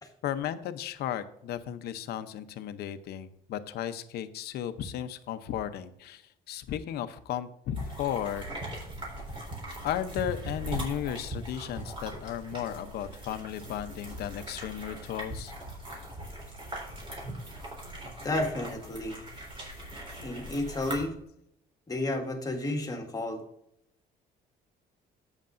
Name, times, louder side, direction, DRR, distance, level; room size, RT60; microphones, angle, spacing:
voice 1, 0.2-6.2 6.5-8.4 9.8-15.5, left 10 dB, 70° left, 11 dB, 0.8 m, -35 dB
sound 1, 7.8-21.0, right 1 dB, 30° right, 3.7 m, -40 dB
voice 2, 18.2-19.2 20.2-21.2 21.9-23.4, left 2 dB, 20° left, 3 dB, 1.8 m, -32 dB
11.0 x 8.2 x 2.6 m, 0.75 s
cardioid pair, 110°, 17 cm